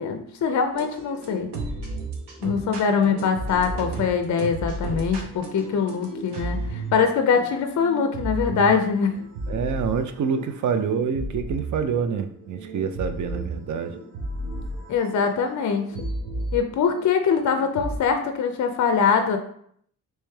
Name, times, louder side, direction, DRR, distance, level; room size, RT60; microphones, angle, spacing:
voice 1, 0.0-1.5 2.4-9.2 14.9-15.9 16.5-19.4, left 6 dB, 50° left, 6 dB, 0.4 m, -23 dB
sound 1, 0.7-18.0, right 2 dB, 85° right, 0.8 m, -34 dB
voice 2, 9.5-14.0, right 6 dB, 50° right, 9 dB, 0.4 m, -26 dB
3.2 x 3.1 x 3.3 m, 0.66 s
wide cardioid pair, 115°, 39 cm